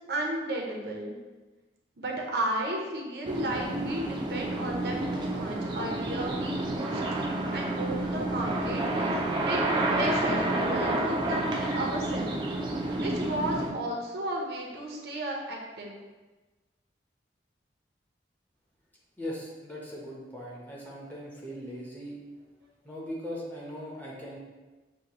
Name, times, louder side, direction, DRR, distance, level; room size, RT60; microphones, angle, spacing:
voice 1, 0.1-1.1 2.0-7.2 7.5-9.1 9.5-9.6 9.9-12.6 12.9-16.0, right 1 dB, 65° right, -1 dB, 0.7 m, -34 dB
sound 1, 3.2-13.7, right 2 dB, 25° right, 0.4 m, -29 dB
voice 2, 19.2-22.2 22.8-24.4, equal, 10° left, -5 dB, 0.7 m, -39 dB
6.3 x 2.2 x 2.8 m, 1.2 s
head